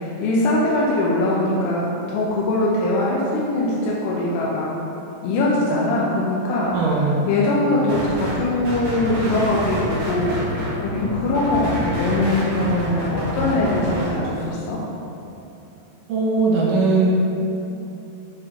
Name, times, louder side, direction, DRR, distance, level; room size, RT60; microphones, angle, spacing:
voice 1, 0.0-4.7 5.2-14.8, left 2 dB, 90° left, -5 dB, 2.9 m, -22 dB
voice 2, 6.7-7.3 16.1-17.1, right 3 dB, 75° right, -3 dB, 2.0 m, -19 dB
sound 1, 7.9-8.4 8.6-14.0, equal, 55° right, 2.3 m, -28 dB
9.8 x 3.7 x 3.7 m, 2.8 s
omnidirectional pair, 4.7 m